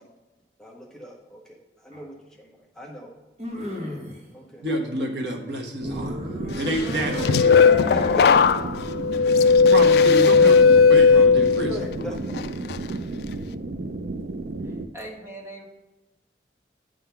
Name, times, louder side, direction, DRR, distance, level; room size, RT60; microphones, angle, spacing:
voice 1, 0.6-2.5 2.8-3.1 3.8-4.0 4.3-4.7 6.4-6.6 7.9-8.9 9.2-9.3 9.7-10.1 10.7-10.8 11.7-12.2, right 1 dB, 5° left, -1 dB, 0.7 m, -40 dB
Angry emotions, 1.9-2.0 3.4-4.2 5.8-8.6 15.0-15.1, left 1 dB, 40° right, 1.5 m, -35 dB
voice 2, 4.6-6.2 6.6-7.5 9.7-12.2, right 1 dB, 75° right, 1 dB, 1.2 m, -28 dB
sound 1, 5.8-14.9, right 2 dB, 55° right, 0.4 m, -33 dB
sound 2, 6.9-11.9 12.3-12.8, left 5 dB, 65° left, 0.3 m, -16 dB
voice 3, 14.6-15.6, right 1 dB, 15° right, -3 dB, 1.5 m, -40 dB
9.7 x 3.8 x 5.8 m, 1.1 s
head